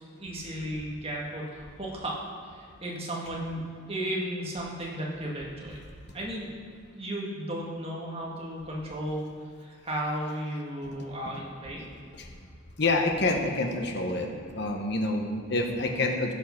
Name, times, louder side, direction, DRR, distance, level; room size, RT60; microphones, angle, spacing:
voice 1, 0.2-2.2 2.4-5.8 6.1-6.6 6.9-9.3 9.6-11.9, right 1 dB, 30° right, -3 dB, 1.8 m, -34 dB
voice 2, 12.8-14.3 14.5-16.3, left 2 dB, 55° left, 2 dB, 1.1 m, -27 dB
15.0 x 5.6 x 5.8 m, 2.3 s
head